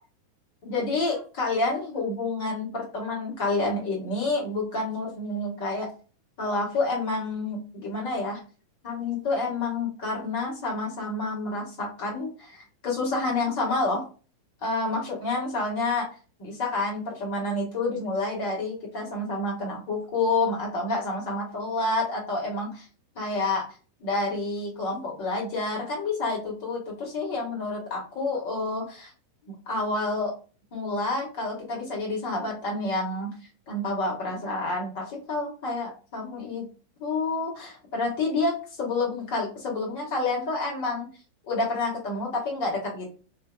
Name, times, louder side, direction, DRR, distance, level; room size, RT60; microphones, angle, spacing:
voice 1, 0.6-5.9 6.4-8.4 8.8-14.1 14.6-16.1 16.4-22.9 23.1-23.6 24.0-29.1 29.7-30.3 30.7-33.3 33.7-36.6 37.0-41.1 41.4-43.1, left 3 dB, 45° left, -3 dB, 1.5 m, -29 dB
2.7 x 2.6 x 2.3 m, 0.36 s
figure-of-eight pair, 90°, 0 cm